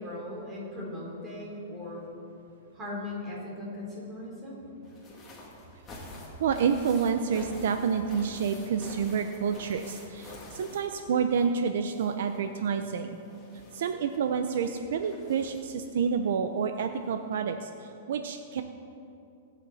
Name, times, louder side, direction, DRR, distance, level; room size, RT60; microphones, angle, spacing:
voice 1, 0.0-2.0 2.7-4.6, left 1 dB, 15° right, -4 dB, 4.0 m, -38 dB
sound 1, 4.8-11.6 11.9-15.8 16.9-17.0 17.3-17.4, left 1 dB, 15° left, 2.8 m, -48 dB
voice 2, 6.4-13.2 13.7-18.6, right 6 dB, 70° right, 7 dB, 0.8 m, -29 dB
24.0 x 8.4 x 4.2 m, 2.6 s
hypercardioid pair, 160°, 0 cm